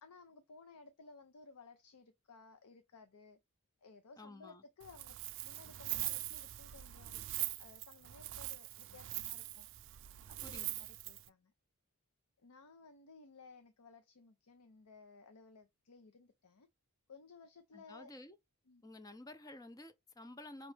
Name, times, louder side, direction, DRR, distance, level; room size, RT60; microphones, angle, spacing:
voice 1, 0.0-3.4 3.8-5.2 5.4-7.2 7.6-9.7 10.3-11.5 12.4-16.7 17.1-18.1 18.7-18.8, left 4 dB, 85° left, 0.6 m, -58 dB
voice 2, 4.2-4.6 10.4-10.7 17.7-18.4 18.8-20.7, left 1 dB, 15° left, 0.4 m, -52 dB
Wind, 4.8-11.3, right 17 dB, 55° right, 0.4 m, -42 dB
5.3 x 3.0 x 3.3 m
head